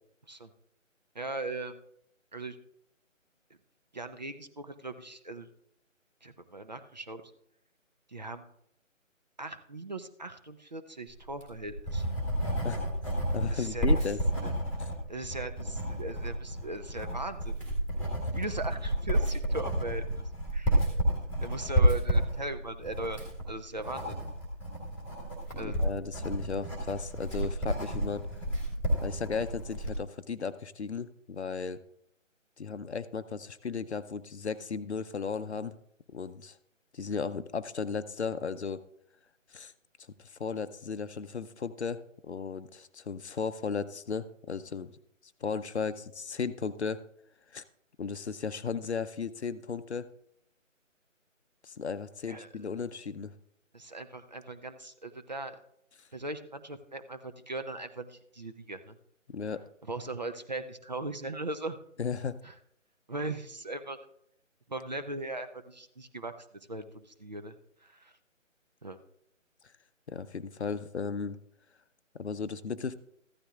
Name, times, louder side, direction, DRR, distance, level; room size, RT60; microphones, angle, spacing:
voice 1, 1.1-1.8 2.3-2.6 3.9-5.5 6.2-7.2 8.1-8.5 9.4-12.0 13.5-13.9 14.4-14.5 15.1-17.6 18.3-20.2 20.5-20.8 21.4-23.2 23.5-24.2 25.6-25.8 52.3-52.5 53.7-55.6 56.1-59.0 59.9-61.8 62.4-62.5 63.1-64.0 64.7-66.3 66.7-67.6 67.8-68.1 68.8-69.0, right 2 dB, 35° right, 9 dB, 0.6 m, -39 dB
Writing, 11.2-30.0, equal, 5° right, 1.6 m, -30 dB
voice 2, 12.6-14.2 14.8-14.9 25.5-28.3 29.0-31.8 32.6-35.8 36.1-36.6 36.9-38.8 39.5-39.7 40.2-44.9 45.4-47.0 47.5-47.6 48.0-50.1 51.6-53.3 59.3-59.6 62.0-62.4 70.1-71.4 72.1-72.9, left 5 dB, 55° left, 13 dB, 0.7 m, -35 dB
14.5 x 12.5 x 2.4 m, 0.72 s
figure-of-eight pair, 155°, 39 cm